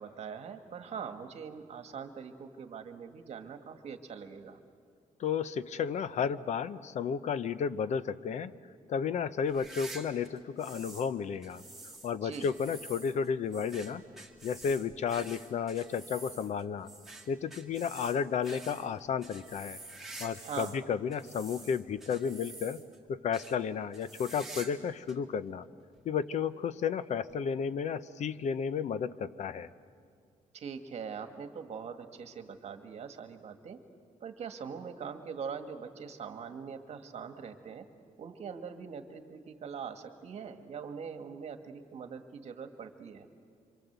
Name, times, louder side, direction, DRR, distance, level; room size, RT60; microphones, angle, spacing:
voice 1, 0.0-4.6 12.2-12.5 20.4-20.8 30.5-33.8 34.2-37.9 38.2-43.2, right 6 dB, 50° right, 7 dB, 1.7 m, -42 dB
voice 2, 5.2-8.5 8.9-11.6 12.0-14.0 14.4-16.9 17.3-19.8 20.2-22.8 23.1-25.7 26.0-29.7, left 7 dB, 55° left, 14 dB, 0.7 m, -32 dB
sound 1, 9.4-11.1 11.4-20.8 21.1-23.0 23.3-23.6 23.9-24.8 25.1-25.2 26.0-26.1 27.3-27.4, right 2 dB, ahead, 2.2 m, -48 dB
26.5 x 25.5 x 8.1 m, 2.2 s
wide cardioid pair, 175°, 14 cm